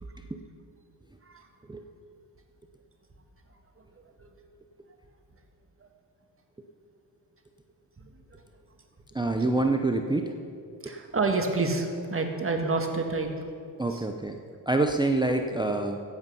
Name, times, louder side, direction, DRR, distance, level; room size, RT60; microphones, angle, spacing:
voice 1, 9.1-10.3 10.8-11.0 13.8-14.4 14.7-16.0, right 2 dB, 10° right, 4 dB, 0.6 m, -26 dB
voice 2, 10.8-13.5 13.9-14.0, right 3 dB, 25° right, 4 dB, 1.7 m, -29 dB
14.0 x 8.4 x 5.5 m, 2.4 s
cardioid pair, 90°, 47 cm